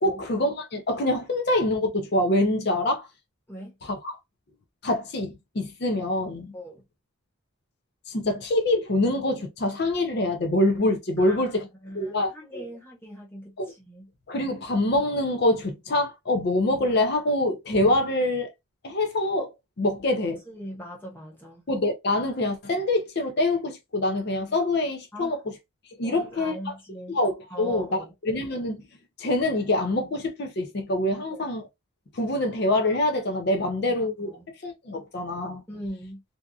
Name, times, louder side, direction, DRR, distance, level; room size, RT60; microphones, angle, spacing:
voice 1, 0.0-3.1 3.8-4.2 4.8-6.5 8.1-11.7 11.9-12.7 13.6-13.7 14.3-18.5 18.8-19.5 19.8-20.4 21.7-25.4 26.0-26.7 27.1-28.8 29.2-31.7 32.1-34.4 34.6-35.6, left 1 dB, 50° left, 0.5 m, -25 dB
voice 2, 11.2-11.5 11.8-14.1 20.5-21.7 25.1-25.4 26.0-27.2 27.5-28.1 31.3-31.4 33.6-33.7 34.0-34.5 35.7-36.2, equal, 10° left, 1.1 m, -41 dB
2.7 x 2.4 x 2.3 m
head